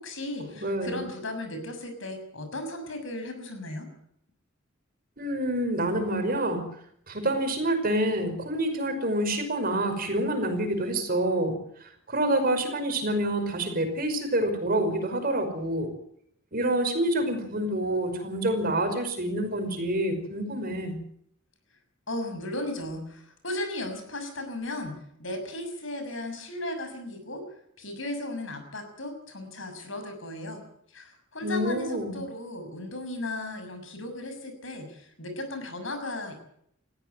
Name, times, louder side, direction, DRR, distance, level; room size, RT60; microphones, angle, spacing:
voice 1, 0.0-3.9 22.1-27.4 27.8-30.6 30.9-36.3, left 1 dB, 70° left, 7 dB, 6.5 m, -36 dB
voice 2, 0.6-1.0 5.2-6.6 7.1-15.9 16.5-21.0 31.4-32.2, right 1 dB, 50° right, 6 dB, 5.5 m, -27 dB
19.5 x 15.5 x 9.1 m, 0.69 s
head